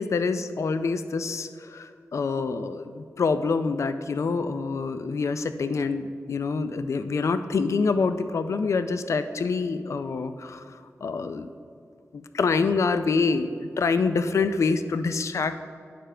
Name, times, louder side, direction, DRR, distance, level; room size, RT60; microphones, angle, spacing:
voice 1, 0.0-11.5 12.1-15.6, left 4 dB, 70° left, 10 dB, 0.4 m, -26 dB
8.8 x 6.8 x 3.3 m, 2.4 s
wide cardioid pair, 120°, 5 cm